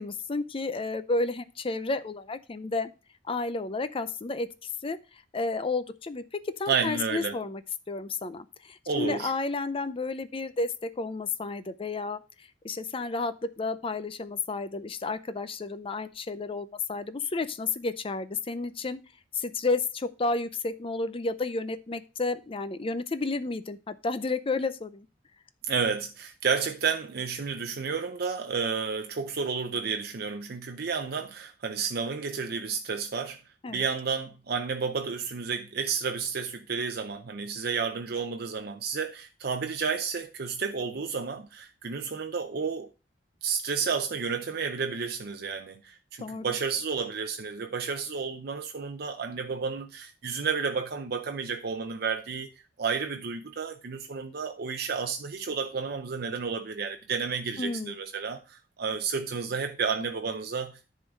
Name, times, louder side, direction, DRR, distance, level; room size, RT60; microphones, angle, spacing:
voice 1, 0.0-2.9 3.3-5.0 5.3-7.6 7.9-12.2 12.6-19.0 19.3-25.1 33.6-33.8 46.2-46.5 57.6-57.9, left 3 dB, 30° left, 0.5 m, -31 dB
voice 2, 6.7-7.4 8.9-9.3 25.7-33.4 33.7-42.9 43.4-52.5 52.8-60.9, right 5 dB, 60° right, 0.6 m, -31 dB
10.5 x 3.8 x 6.2 m
head